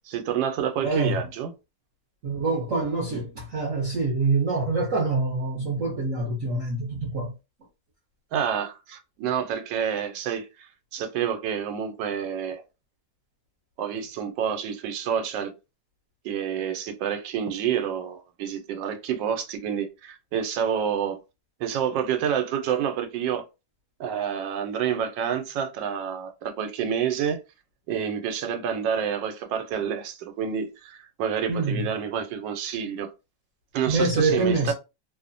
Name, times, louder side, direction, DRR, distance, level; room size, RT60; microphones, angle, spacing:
voice 1, 0.1-1.5 8.3-12.6 13.8-15.5 16.2-21.2 21.6-23.4 24.0-27.4 27.9-33.1 33.7-34.7, right 8 dB, 80° right, 1.3 m, -28 dB
voice 2, 0.8-1.2 2.2-7.3 31.5-31.8 33.9-34.7, right 3 dB, 55° right, 0.9 m, -25 dB
3.1 x 2.0 x 2.5 m
omnidirectional pair, 2.0 m